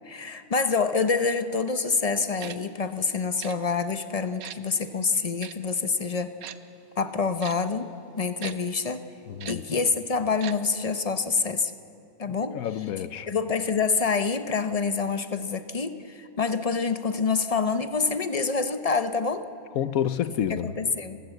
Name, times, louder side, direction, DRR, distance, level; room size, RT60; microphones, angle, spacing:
voice 1, 0.0-6.3 7.0-7.9 8.2-9.0 9.5-11.7 12.2-12.9 13.3-19.5 20.5-21.2, left 5 dB, 35° left, 0.7 m, -27 dB
Tick-tock, 2.4-2.6 3.4-3.6 4.4-4.6 5.4-5.5 6.4-6.6 7.4-7.6 8.4-8.6 9.4-9.6 10.4-10.6 10.8-10.9, right 10 dB, 85° right, 1.2 m, -38 dB
voice 2, 9.3-9.6 12.3-13.3 19.8-20.7, left 10 dB, 85° left, 1.2 m, -29 dB
29.5 x 15.5 x 8.0 m
omnidirectional pair, 1.4 m